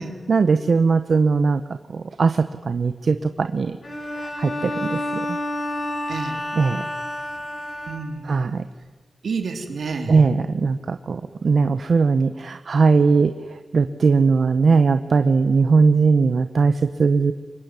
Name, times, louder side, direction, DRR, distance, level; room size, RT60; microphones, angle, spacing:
voice 1, 0.3-1.6 1.9-3.7 4.1-5.4 6.6-6.8 8.3-8.6 10.1-13.3 13.7-17.3, right 4 dB, 65° right, 10 dB, 0.9 m, -19 dB
Bowed string instrument, 3.8-8.4, left 1 dB, 45° left, 4.9 m, -30 dB
voice 2, 6.1-6.4 7.9-8.5 9.2-10.2, right 4 dB, 85° right, 5 dB, 3.5 m, -30 dB
25.5 x 23.0 x 9.7 m, 1.3 s
wide cardioid pair, 110°, 0 cm